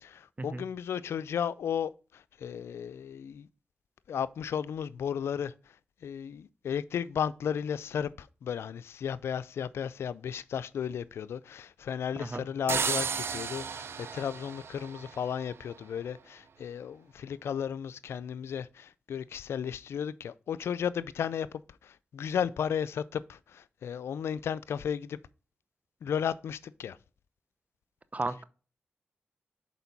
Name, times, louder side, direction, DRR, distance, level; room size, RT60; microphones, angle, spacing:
voice 1, 0.0-3.5 4.1-5.5 6.0-21.5 21.8-25.2 26.0-27.0, left 8 dB, 85° left, 0.3 m, -34 dB
sound 1, 12.7-15.5, right 6 dB, 70° right, 0.6 m, -34 dB
voice 2, 28.1-28.4, right 2 dB, 35° right, 0.8 m, -34 dB
6.9 x 4.5 x 4.0 m
cardioid pair, 40°, 4 cm